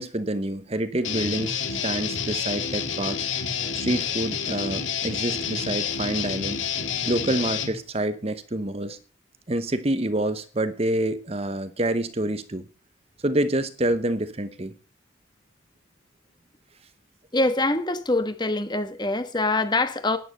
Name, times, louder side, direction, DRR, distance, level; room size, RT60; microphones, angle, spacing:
voice 1, 0.0-3.3 3.7-6.6 7.1-9.0 9.5-12.6 13.2-14.7, right 1 dB, 30° right, 0.9 m, -27 dB
Guitar, 1.0-7.7, left 7 dB, 85° left, 2.0 m, -29 dB
voice 2, 17.3-20.2, left 2 dB, 20° left, 1.2 m, -24 dB
11.0 x 9.9 x 6.5 m
head